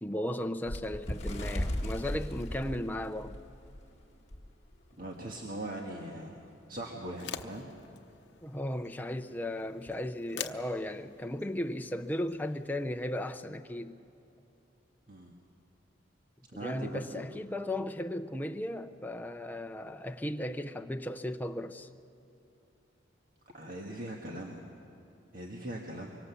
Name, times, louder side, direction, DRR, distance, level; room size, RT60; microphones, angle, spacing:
voice 1, 0.0-3.4 8.4-14.0 16.6-21.9, left 1 dB, 10° left, 0.6 m, -36 dB
Bird, 0.6-3.8 4.3-4.5 4.7-5.0 5.8-5.9, left 1 dB, 35° left, 1.7 m, -36 dB
voice 2, 5.0-6.4 6.7-7.7 15.1-15.3 16.6-17.2 23.5-24.6 25.3-26.1, right 1 dB, 45° right, 1.7 m, -40 dB
sound 1, 7.0-13.4, left 8 dB, 65° left, 0.8 m, -47 dB
24.5 x 24.0 x 7.1 m
head